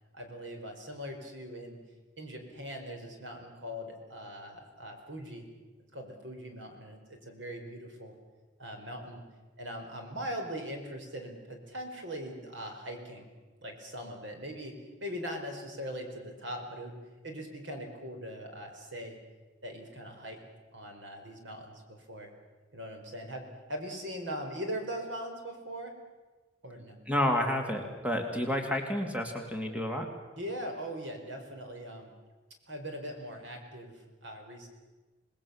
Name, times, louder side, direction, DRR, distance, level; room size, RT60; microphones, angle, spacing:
voice 1, 0.1-1.8 2.2-5.4 5.9-8.1 8.6-9.2 9.6-13.3 13.6-14.7 15.0-16.9 17.2-19.2 19.6-20.4 20.7-22.3 22.7-25.9 26.6-27.0 30.4-32.1 32.7-34.7, equal, 75° right, 3 dB, 4.8 m, -41 dB
voice 2, 27.1-30.1, left 1 dB, 10° right, 3 dB, 2.5 m, -30 dB
27.5 x 20.0 x 7.2 m, 1.2 s
head